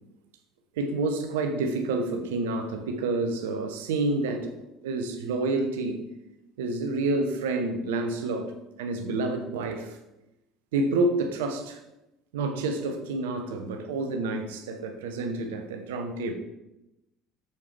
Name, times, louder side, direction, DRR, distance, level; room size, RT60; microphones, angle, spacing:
voice 1, 0.8-4.6 4.8-6.0 6.6-10.0 10.7-11.8 12.3-16.3, right 2 dB, 70° right, 6 dB, 0.8 m, -29 dB
6.8 x 6.6 x 3.3 m, 0.93 s
figure-of-eight pair, 60°, 0 cm